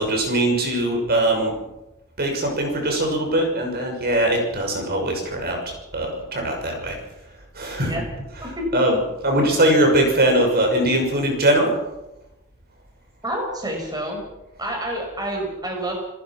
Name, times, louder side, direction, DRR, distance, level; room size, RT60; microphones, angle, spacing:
voice 1, 0.0-1.5 2.2-5.6 5.9-7.0 7.5-8.0 8.7-11.8, right 1 dB, 45° right, 2 dB, 6.2 m, -21 dB
voice 2, 13.2-14.2 14.6-16.0, right 1 dB, 20° right, 1 dB, 5.5 m, -28 dB
29.0 x 14.5 x 6.1 m, 0.98 s
head